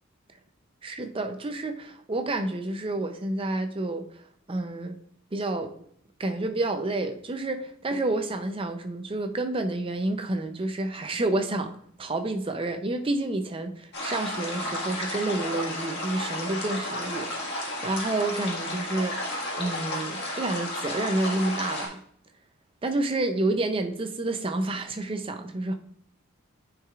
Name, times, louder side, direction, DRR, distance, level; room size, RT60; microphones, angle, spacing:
voice 1, 0.8-4.1 4.5-5.0 5.3-5.8 6.2-19.2 19.6-22.0 22.8-25.7, right 2 dB, 25° right, 0.5 m, -29 dB
sound 1, 13.9-21.9, left 1 dB, 50° left, 1.7 m, -33 dB
9.7 x 4.8 x 2.4 m
head